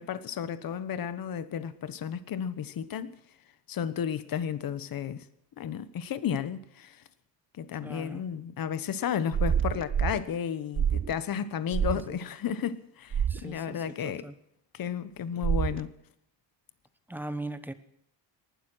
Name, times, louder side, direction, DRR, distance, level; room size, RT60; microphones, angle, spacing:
voice 1, 0.0-3.2 3.7-5.2 5.6-7.0 7.6-14.3 14.7-15.9, left 8 dB, 50° left, 1.2 m, -33 dB
voice 2, 7.8-8.2 11.9-12.2 13.3-14.3 17.1-17.7, right 2 dB, 5° right, 1.1 m, -39 dB
sound 1, 9.3-10.2 10.8-11.1 11.7-12.0 13.1-13.4 15.4-15.8, right 8 dB, 30° right, 0.5 m, -27 dB
19.0 x 12.0 x 6.2 m
cardioid pair, 145°, 43 cm